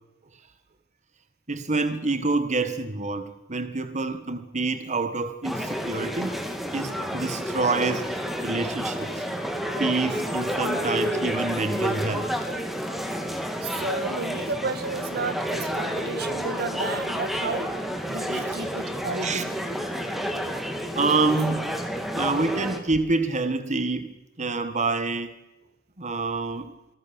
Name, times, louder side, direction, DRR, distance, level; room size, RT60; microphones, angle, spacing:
voice 1, 1.5-6.4 6.7-9.2 9.8-12.4 18.2-18.6 19.2-19.4 20.9-21.7 22.1-25.4 26.0-26.7, right 3 dB, 35° right, 9 dB, 1.7 m, -27 dB
sound 1, 5.4-22.8, equal, ahead, 2.9 m, -30 dB
voice 2, 13.6-17.8 18.1-19.5, right 3 dB, 50° right, 11 dB, 1.8 m, -32 dB
27.5 x 20.0 x 7.2 m, 1.0 s
head